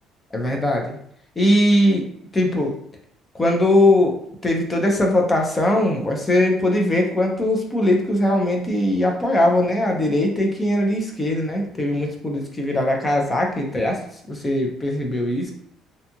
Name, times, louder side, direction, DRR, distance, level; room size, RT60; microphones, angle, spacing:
voice 1, 0.3-1.0 1.4-2.0 2.3-2.7 3.3-4.2 4.4-14.0 14.3-15.5, left 1 dB, 15° left, 1 dB, 0.4 m, -20 dB
2.6 x 2.3 x 2.7 m, 0.67 s
cardioid pair, 180°, 0 cm